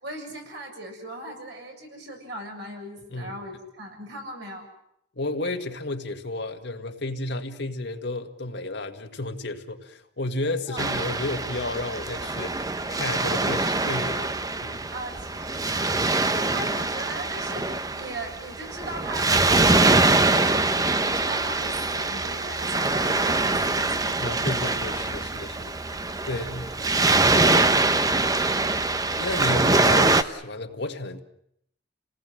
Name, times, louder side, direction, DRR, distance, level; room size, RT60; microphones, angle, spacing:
voice 1, 0.0-4.7 10.7-10.8 14.9-24.4 26.3-26.6, right 1 dB, 60° right, 2 dB, 7.3 m, -39 dB
voice 2, 5.2-14.3 14.6-14.8 24.2-25.8 26.2-26.6 27.4-27.8 29.2-31.2, left 2 dB, 60° left, 5 dB, 1.9 m, -32 dB
Waves surf, 10.8-30.2, right 3 dB, 20° right, 0.9 m, -23 dB
29.5 x 19.0 x 7.8 m, 0.75 s
head